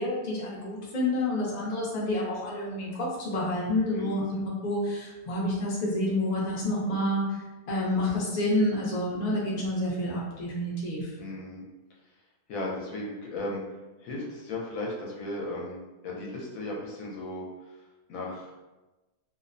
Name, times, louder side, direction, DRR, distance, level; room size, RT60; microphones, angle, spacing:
voice 1, 0.0-7.4 7.7-11.1, left 1 dB, 50° left, -5 dB, 0.5 m, -29 dB
voice 2, 3.9-4.2 11.2-11.6 12.5-13.6 14.0-15.8 16.0-17.8 18.1-18.5, left 2 dB, 70° left, -3 dB, 0.9 m, -36 dB
2.6 x 2.0 x 2.5 m, 1.1 s
omnidirectional pair, 1.5 m